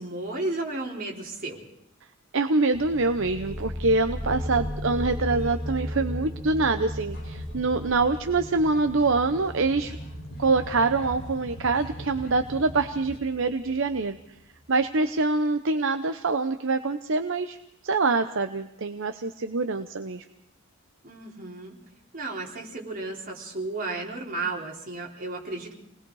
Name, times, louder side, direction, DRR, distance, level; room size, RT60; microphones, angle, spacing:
voice 1, 0.0-1.6 21.0-21.8 22.1-25.7, right 2 dB, 40° right, -1 dB, 4.0 m, -33 dB
voice 2, 2.3-10.0 10.4-14.2 14.7-17.6 17.8-20.2, right 3 dB, 65° right, 8 dB, 0.8 m, -25 dB
sound 1, 2.7-14.1, equal, 25° right, 2.2 m, -36 dB
sound 2, 2.8-13.2, equal, 50° left, 7.3 m, -43 dB
28.0 x 20.5 x 4.8 m, 0.79 s
head